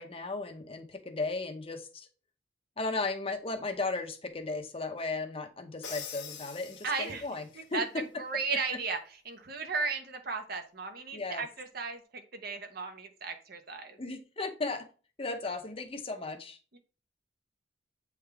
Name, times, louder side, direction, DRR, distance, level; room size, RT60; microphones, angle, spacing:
voice 1, 0.0-2.1 2.8-7.4 7.7-7.8 11.1-11.4 14.0-14.9 15.2-16.6, left 3 dB, 30° left, 6 dB, 0.8 m, -35 dB
Crash cymbal, 5.8-7.5, left 7 dB, 70° left, 1.3 m, -44 dB
voice 2, 6.8-7.3 7.5-14.0 16.7-16.8, right 4 dB, 55° right, 6 dB, 1.0 m, -35 dB
8.1 x 3.6 x 3.4 m, 0.36 s
head